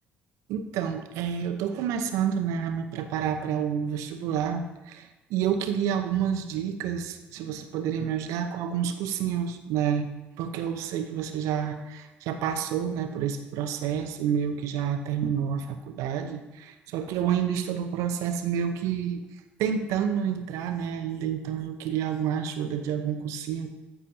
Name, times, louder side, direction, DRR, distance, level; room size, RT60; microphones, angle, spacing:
voice 1, 0.5-10.1 10.4-19.2 19.6-23.7, right 8 dB, 65° right, 8 dB, 0.8 m, -29 dB
13.5 x 7.1 x 2.8 m, 1.1 s
hypercardioid pair, 55°, 6 cm